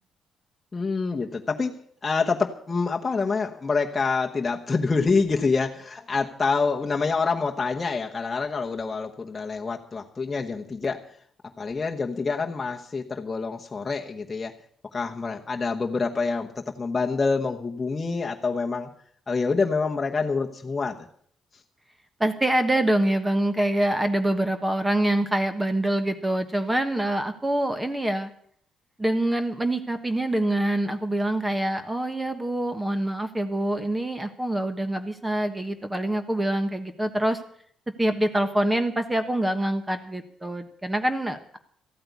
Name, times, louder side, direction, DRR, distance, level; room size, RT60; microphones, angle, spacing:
voice 1, 0.7-1.8 2.0-11.0 11.6-14.5 14.9-18.9 19.3-21.0, left 4 dB, 25° left, 1 dB, 1.1 m, -26 dB
voice 2, 22.2-28.3 29.0-37.4 38.0-41.6, right 1 dB, 10° right, 9 dB, 1.3 m, -25 dB
14.0 x 8.8 x 8.3 m, 0.62 s
cardioid pair, 90°, 0 cm